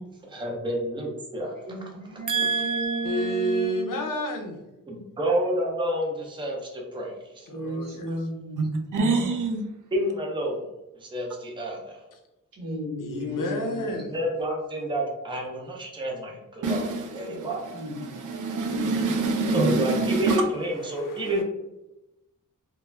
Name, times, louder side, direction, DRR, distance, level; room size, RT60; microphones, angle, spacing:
voice 1, 0.3-1.7 2.1-2.2 4.9-7.5 9.9-10.6 11.0-12.0 13.9-17.6 19.5-21.4, equal, 15° right, -1 dB, 0.4 m, -29 dB
voice 2, 1.6-3.9 7.5-8.6 12.5-14.0 17.7-18.0 18.6-18.9, right 1 dB, 85° right, -4 dB, 0.9 m, -33 dB
voice 3, 2.3-3.7 8.6-8.7 8.9-9.6 16.6-17.5 18.0-20.4, right 3 dB, 65° right, 4 dB, 0.5 m, -26 dB
voice 4, 3.0-4.6 7.5-8.1 13.0-14.1 17.3-17.6 19.5-19.8 20.9-21.4, equal, 75° left, 4 dB, 0.6 m, -30 dB
2.3 x 2.1 x 3.2 m, 0.96 s
wide cardioid pair, 170°, 33 cm